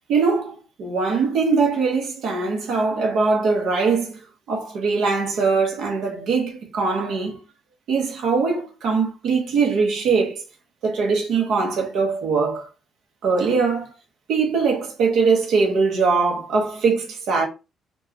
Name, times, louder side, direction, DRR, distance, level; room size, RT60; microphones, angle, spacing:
voice 1, 0.1-4.2 4.5-7.4 7.9-10.4 10.8-12.7 13.2-13.9 14.3-17.5, right 4 dB, 55° right, 1.1 m, -21 dB
4.5 x 2.4 x 2.9 m
cardioid pair, 175°, 0 cm